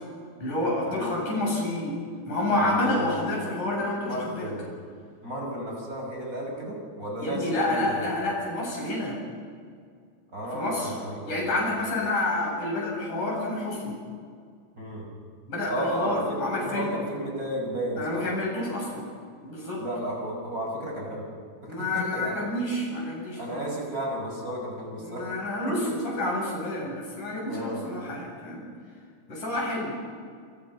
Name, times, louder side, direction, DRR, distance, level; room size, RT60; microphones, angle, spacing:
voice 1, 0.4-1.9 2.3-4.5 7.2-9.2 10.5-10.9 11.3-13.9 15.5-16.9 18.0-19.0 19.4-19.8 21.7-23.6 25.0-25.8 26.0-28.7 29.3-29.9, left 1 dB, 80° left, -2 dB, 9.6 m, -29 dB
voice 2, 2.5-3.5 4.0-4.6 5.2-8.1 10.3-11.7 14.8-15.1 15.7-18.3 19.8-21.3 21.6-22.4 23.4-25.3 25.7-25.9 27.4-27.8, right 1 dB, 25° right, -1 dB, 6.4 m, -33 dB
28.0 x 27.5 x 5.7 m, 2.1 s
omnidirectional pair, 3.5 m